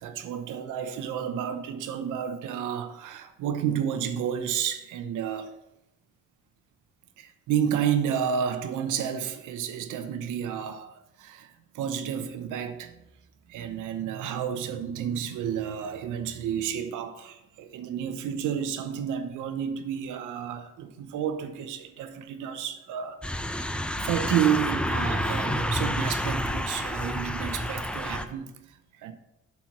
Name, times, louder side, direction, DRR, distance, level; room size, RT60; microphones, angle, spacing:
voice 1, 0.0-5.5 7.2-12.9 13.5-23.2 23.6-29.1, right 8 dB, 90° right, 0.8 m, -31 dB
sound 1, 23.2-28.3, left 1 dB, 5° left, 0.5 m, -29 dB
7.2 x 4.5 x 5.8 m
cardioid pair, 90°, 30 cm